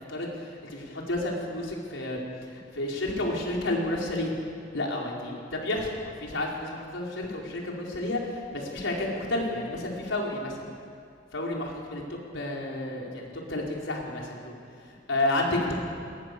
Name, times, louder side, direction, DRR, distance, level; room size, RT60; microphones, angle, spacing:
voice 1, 0.0-4.4 4.7-10.7 11.3-14.6 14.9-15.7, left 1 dB, 80° left, -2 dB, 4.9 m, -31 dB
27.0 x 21.0 x 7.0 m, 2.3 s
head